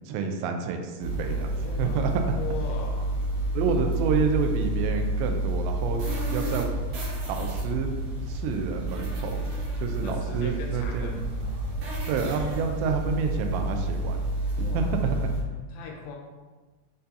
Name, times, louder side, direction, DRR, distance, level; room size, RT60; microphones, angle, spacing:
voice 1, 0.1-2.1 3.5-6.0 6.3-6.7 7.3-9.5 9.8-11.5 12.1-14.3 14.6-15.3, right 5 dB, 85° right, 4 dB, 2.7 m, -29 dB
sound 1, 1.0-15.4, right 1 dB, 65° right, 2.1 m, -29 dB
voice 2, 1.6-3.2 5.9-6.4 10.0-11.2 14.6-15.0 15.7-16.2, left 5 dB, 85° left, 0 dB, 2.6 m, -40 dB
7.6 x 2.7 x 2.6 m, 1.3 s
omnidirectional pair, 4.9 m